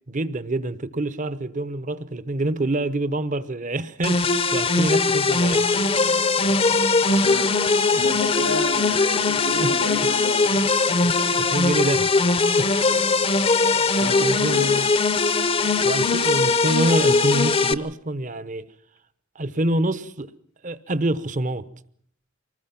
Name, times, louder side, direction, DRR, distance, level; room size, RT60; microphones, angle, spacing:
voice 1, 0.1-6.0 6.7-6.8 7.9-8.0 9.6-9.8 11.1-13.0 13.6-14.9 15.8-18.7 19.3-20.3 20.6-21.6, right 1 dB, 40° right, 1.0 m, -27 dB
sound 1, 4.0-17.7, left 3 dB, 25° left, 0.8 m, -20 dB
voice 2, 7.9-10.7 14.0-14.9, left 2 dB, 90° left, 3.0 m, -32 dB
25.0 x 19.5 x 5.9 m
head